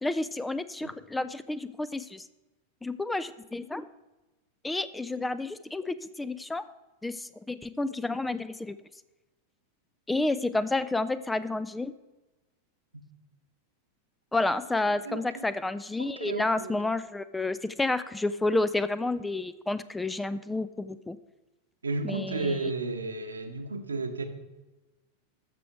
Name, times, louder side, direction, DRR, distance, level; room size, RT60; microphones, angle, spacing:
voice 1, 0.0-2.2 2.8-3.8 4.6-6.6 7.0-8.8 10.1-11.9 14.3-21.2 22.0-22.5, left 2 dB, 5° left, 15 dB, 0.4 m, -30 dB
voice 2, 15.1-15.4 16.0-16.7 21.8-24.2, right 3 dB, 75° right, 7 dB, 1.0 m, -33 dB
13.5 x 6.1 x 4.6 m, 1.1 s
figure-of-eight pair, 90°, 0 cm